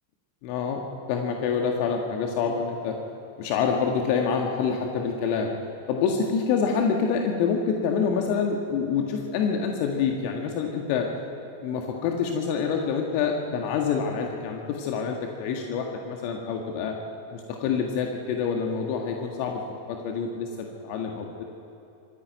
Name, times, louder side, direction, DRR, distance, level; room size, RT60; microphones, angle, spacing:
voice 1, 0.4-0.8 1.1-3.0 3.4-5.5 5.9-11.1 11.6-17.0 17.3-21.4, left 6 dB, 45° left, 2 dB, 1.8 m, -27 dB
26.5 x 11.0 x 9.3 m, 2.9 s
figure-of-eight pair, 90°, 0 cm